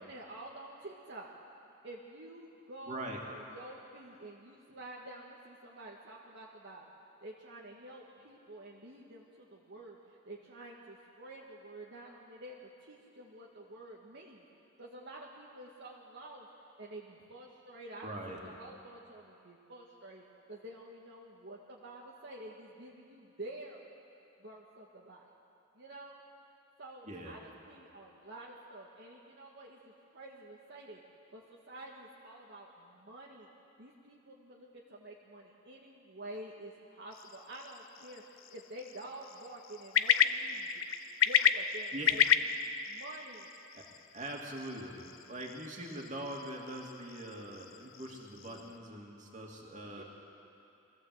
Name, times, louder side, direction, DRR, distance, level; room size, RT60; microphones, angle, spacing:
voice 1, 0.0-1.3 1.8-6.9 7.2-14.4 14.8-16.5 16.8-20.2 20.5-23.8 24.4-25.3 25.7-26.2 26.8-31.0 31.3-33.5 33.8-40.9 41.2-43.5 49.9-50.0, right 1 dB, 60° right, -3 dB, 1.7 m, -49 dB
voice 2, 2.9-3.2 18.0-18.4 27.1-27.4 41.9-42.1 43.7-43.8 44.1-45.0 45.3-50.0, right 1 dB, 40° right, -1 dB, 2.7 m, -42 dB
sound 1, 37.1-48.8, left 8 dB, 80° left, 0.7 m, -33 dB
23.0 x 15.0 x 8.0 m, 2.7 s
head